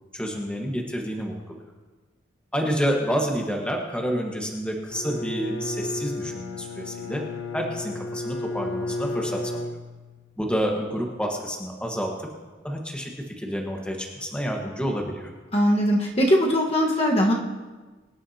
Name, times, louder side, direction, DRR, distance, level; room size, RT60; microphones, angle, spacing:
voice 1, 0.1-1.6 2.5-7.2 7.5-9.7 10.4-12.1 12.6-15.3, equal, 5° left, 0 dB, 1.3 m, -29 dB
Bowed string instrument, 4.9-10.3, left 2 dB, 85° left, 0.8 m, -33 dB
voice 2, 15.5-17.3, equal, 30° left, -1 dB, 1.3 m, -20 dB
23.5 x 11.0 x 2.8 m, 1.3 s
head